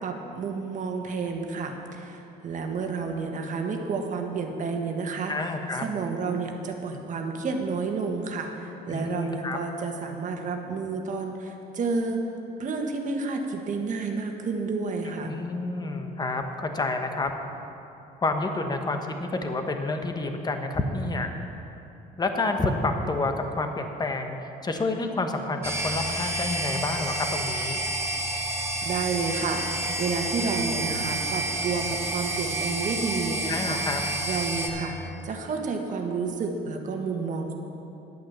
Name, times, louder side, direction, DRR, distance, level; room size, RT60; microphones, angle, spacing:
voice 1, 0.0-5.3 5.8-12.2 12.6-15.3 28.8-29.6 30.0-33.8 34.2-37.5, right 4 dB, 50° right, 3 dB, 1.5 m, -30 dB
voice 2, 5.3-5.8 8.9-9.6 15.2-17.3 18.2-21.3 22.2-27.8 33.5-34.0, left 2 dB, 25° left, 5 dB, 1.2 m, -29 dB
sound 1, 25.6-34.7, right 1 dB, 15° right, 1.7 m, -29 dB
10.5 x 8.7 x 7.2 m, 2.9 s
cardioid pair, 110°, 17 cm